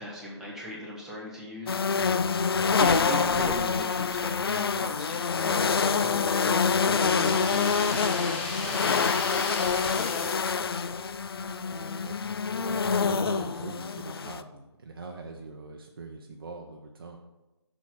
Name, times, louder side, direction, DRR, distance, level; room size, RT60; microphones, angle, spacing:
voice 1, 0.0-2.1 2.8-9.9, equal, 5° right, -4 dB, 0.6 m, -38 dB
sound 1, 1.7-14.4, left 5 dB, 55° left, 0.4 m, -26 dB
sound 2, 3.9-5.8, left 1 dB, 35° right, 1.0 m, -47 dB
sound 3, 7.0-11.1, left 3 dB, 20° left, 0.9 m, -37 dB
voice 2, 11.7-12.4 12.8-17.2, right 3 dB, 55° right, 2 dB, 0.7 m, -42 dB
6.0 x 4.5 x 5.6 m, 1.0 s
figure-of-eight pair, 160°, 15 cm